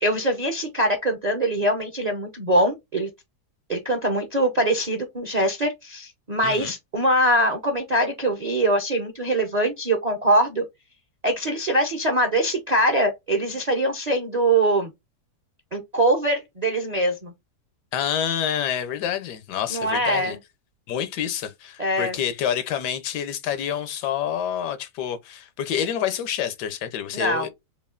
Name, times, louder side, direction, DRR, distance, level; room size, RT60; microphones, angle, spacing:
voice 1, 0.0-3.1 3.7-10.6 11.2-14.9 15.7-17.3 19.7-20.4 21.8-22.2 27.1-27.5, right 1 dB, 50° right, 0.4 m, -23 dB
voice 2, 17.9-20.4 20.9-27.5, left 9 dB, 85° left, 1.3 m, -28 dB
5.2 x 2.4 x 2.4 m
omnidirectional pair, 1.7 m